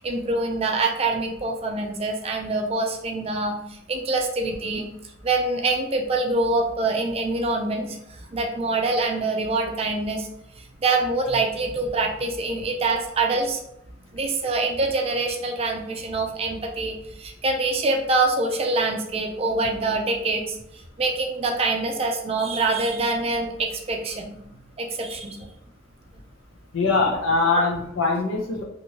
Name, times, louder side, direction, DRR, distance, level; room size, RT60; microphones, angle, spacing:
voice 1, 0.0-4.9 5.2-8.0 8.3-10.3 10.6-13.6 14.1-20.6 21.0-24.4 24.8-25.5, right 3 dB, 30° right, 3 dB, 0.4 m, -25 dB
voice 2, 26.7-28.6, left 3 dB, 75° left, 0 dB, 0.7 m, -22 dB
2.9 x 2.6 x 2.8 m, 0.76 s
head